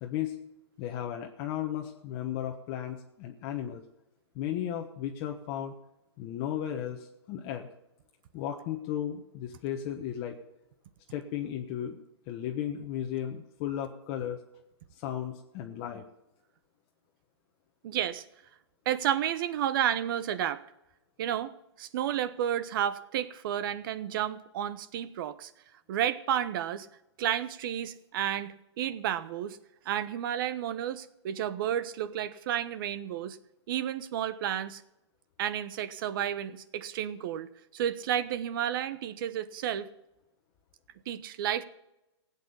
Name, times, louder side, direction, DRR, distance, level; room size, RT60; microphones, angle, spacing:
voice 1, 0.0-0.4 0.8-3.8 4.3-5.7 6.2-7.7 8.3-10.4 11.1-12.0 12.3-14.4 14.9-16.0, left 10 dB, 35° left, 3 dB, 1.2 m, -35 dB
voice 2, 17.8-18.2 18.8-20.6 21.2-21.5 21.8-25.5 25.9-26.9 27.2-29.6 29.8-33.4 33.7-34.8 35.4-39.9 41.1-41.6, right 10 dB, 50° right, 15 dB, 1.0 m, -31 dB
16.5 x 8.5 x 7.0 m, 0.92 s
hypercardioid pair, 145°, 15 cm